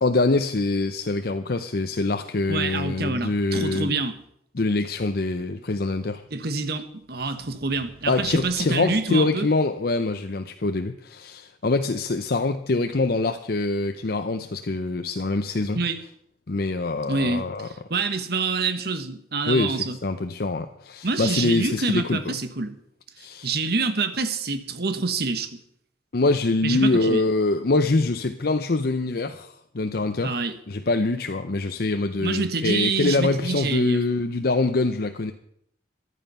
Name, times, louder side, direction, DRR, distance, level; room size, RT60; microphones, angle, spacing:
voice 1, 0.0-3.9 4.6-6.2 8.1-15.8 16.5-17.7 19.5-22.3 23.2-23.5 26.1-30.4 30.7-35.3, left 3 dB, 60° left, 8 dB, 0.7 m, -24 dB
voice 2, 2.5-4.2 6.3-9.5 15.7-16.0 17.1-20.0 21.0-22.8 23.4-25.6 26.6-27.2 30.2-30.6 32.2-34.0, right 4 dB, 60° right, 10 dB, 1.3 m, -27 dB
sound 1, 6.8-10.1, right 1 dB, 30° right, 3.7 m, -52 dB
14.5 x 11.0 x 5.5 m, 0.72 s
head